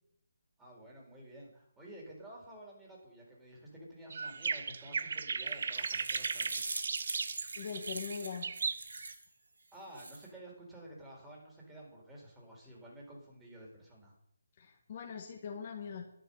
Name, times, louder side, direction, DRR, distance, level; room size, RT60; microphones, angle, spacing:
voice 1, 0.6-6.7 9.7-14.1, right 1 dB, 10° right, -4 dB, 4.2 m, -52 dB
sound 1, 4.1-9.1, right 5 dB, 55° right, 0.8 m, -37 dB
sound 2, 5.5-9.3 9.7-10.3, right 3 dB, 75° right, 2.2 m, -43 dB
voice 2, 7.6-8.5 14.6-16.1, left 6 dB, 40° left, 2 dB, 1.7 m, -41 dB
11.0 x 10.5 x 5.6 m, 0.72 s
figure-of-eight pair, 155°, 0 cm